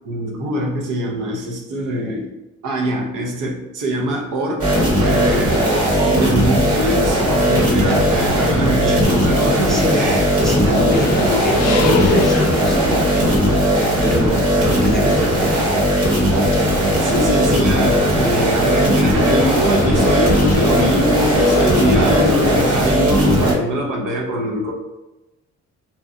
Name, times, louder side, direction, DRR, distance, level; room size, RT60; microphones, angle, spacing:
voice 1, 0.0-2.3 2.6-4.7 5.0-10.3 17.0-24.7, equal, 85° right, 0 dB, 0.7 m, -23 dB
sound 1, 4.6-23.5, equal, 50° right, 1.0 m, -17 dB
sound 2, 7.9-22.7, left 4 dB, 90° left, 0.5 m, -27 dB
voice 2, 9.6-10.1 10.4-15.6 18.2-18.4 19.1-19.2, right 1 dB, ahead, -2 dB, 0.5 m, -25 dB
2.8 x 2.2 x 2.5 m, 1.0 s
cardioid pair, 90°, 30 cm